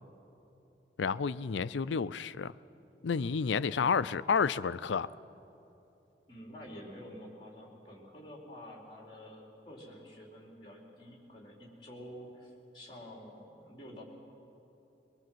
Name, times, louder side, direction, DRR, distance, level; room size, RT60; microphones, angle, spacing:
voice 1, 1.0-2.5 3.0-5.1, left 5 dB, 90° left, 0.5 m, -30 dB
voice 2, 6.3-14.0, equal, 25° left, 4.4 m, -49 dB
23.0 x 22.5 x 7.8 m
head